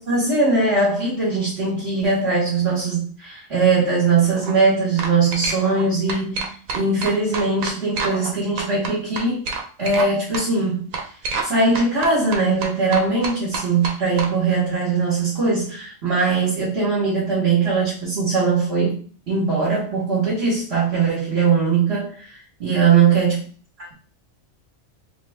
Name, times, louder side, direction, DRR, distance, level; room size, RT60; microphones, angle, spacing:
voice 1, 0.0-9.4 9.8-10.9 11.4-19.0 19.3-23.4, right 4 dB, 55° right, -6 dB, 1.3 m, -20 dB
sound 1, 4.2-4.5 5.0-5.8 6.1-8.3 8.6-10.1 10.3-10.5 10.9-11.5 11.7-14.3, right 4 dB, 90° right, 1.1 m, -28 dB
3.2 x 2.2 x 3.4 m, 0.41 s
omnidirectional pair, 1.3 m